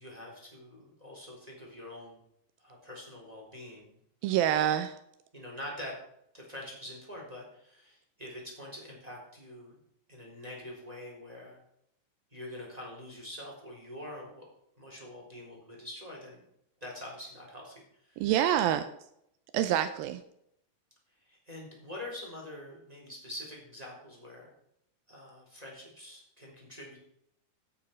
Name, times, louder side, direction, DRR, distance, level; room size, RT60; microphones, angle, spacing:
voice 1, 0.0-2.2 2.6-4.0 4.3-4.4 5.3-6.0 6.3-9.8 10.1-11.6 12.3-14.5 14.8-16.4 16.8-18.2 21.2-24.5 25.1-27.0, left 1 dB, 10° right, -3 dB, 3.6 m, -45 dB
voice 2, 4.2-5.0 18.2-18.9 19.5-20.2, right 11 dB, 85° right, 10 dB, 2.4 m, -26 dB
15.5 x 7.0 x 5.2 m, 0.75 s
omnidirectional pair, 4.2 m